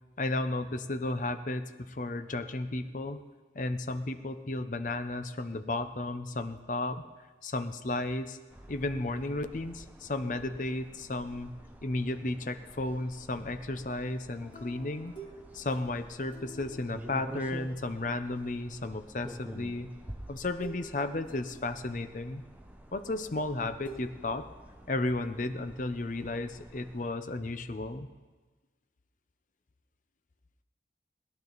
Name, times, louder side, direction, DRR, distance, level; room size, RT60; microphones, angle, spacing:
voice 1, 0.2-3.2 3.5-7.0 7.4-8.4 8.7-11.5 11.8-15.1 15.5-19.9 20.3-22.4 22.9-24.5 24.9-28.1, left 2 dB, 45° left, 9 dB, 0.7 m, -33 dB
sound 1, 8.5-27.1, equal, 10° right, 0.9 m, -49 dB
sound 2, 14.5-18.1 19.5-19.6 20.6-20.9 21.2-22.1 23.9-24.0, right 3 dB, 25° left, 1.9 m, -49 dB
20.5 x 11.0 x 4.0 m, 1.3 s
head